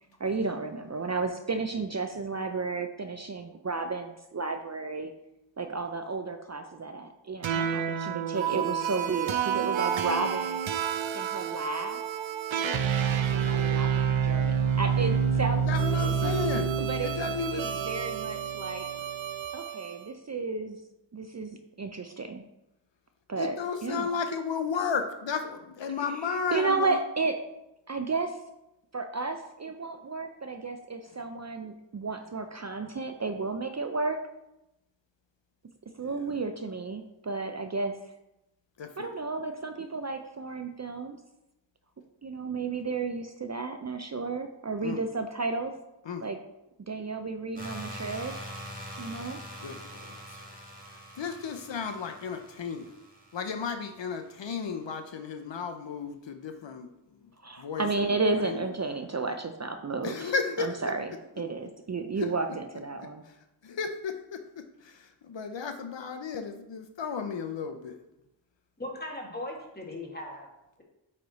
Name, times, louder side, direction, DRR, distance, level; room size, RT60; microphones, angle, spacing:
voice 1, 0.2-5.1 5.6-10.6 11.1-12.0 12.6-16.3 16.8-18.9 19.5-20.8 21.1-22.4 23.3-24.1 26.1-27.4 27.9-28.4 28.9-34.2 36.0-38.0 39.0-41.2 42.2-45.7 46.2-46.4 46.9-48.3 49.0-49.4 57.4-63.2, right 3 dB, 40° right, 6 dB, 0.5 m, -33 dB
sound 1, 7.4-19.9, right 7 dB, 80° right, 0.6 m, -28 dB
voice 2, 15.7-16.7 17.0-17.7 23.4-27.0 38.8-39.1 44.8-45.0 46.1-46.3 49.6-50.4 51.2-52.9 53.3-56.9 57.6-57.9 58.4-58.6 60.0-60.7 62.2-62.3 63.6-68.0, left 5 dB, 70° left, 6 dB, 0.6 m, -33 dB
sound 2, 47.5-54.4, equal, 20° right, 1.9 m, -44 dB
voice 3, 68.8-70.5, left 1 dB, 20° left, -1 dB, 1.6 m, -38 dB
8.4 x 3.3 x 4.0 m, 0.89 s
wide cardioid pair, 55°, 46 cm